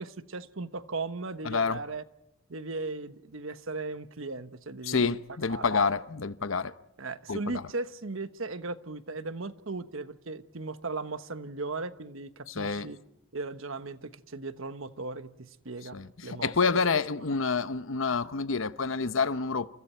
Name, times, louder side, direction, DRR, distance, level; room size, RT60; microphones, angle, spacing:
voice 1, 0.0-2.0 2.5-5.2 5.5-5.7 7.0-13.0 13.3-16.8, right 3 dB, 75° right, 1.2 m, -37 dB
voice 2, 1.4-1.8 4.8-6.7 7.3-7.6 12.5-12.9 15.9-19.7, left 4 dB, 75° left, 0.9 m, -28 dB
29.5 x 28.5 x 4.5 m
head